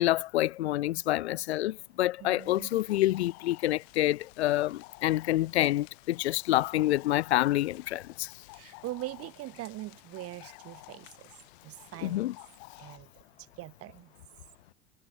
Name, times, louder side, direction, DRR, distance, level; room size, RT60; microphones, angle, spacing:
voice 1, 0.0-8.3 12.0-12.3, left 15 dB, 80° left, 0.6 m, -27 dB
voice 2, 2.2-2.7 8.5-11.3 11.6-12.3 12.8-13.1 13.6-14.1, right 16 dB, 45° right, 1.4 m, -42 dB
sound 1, 2.4-13.0, left 40 dB or more, 60° left, 4.2 m, -53 dB
hypercardioid pair, 80°, 33 cm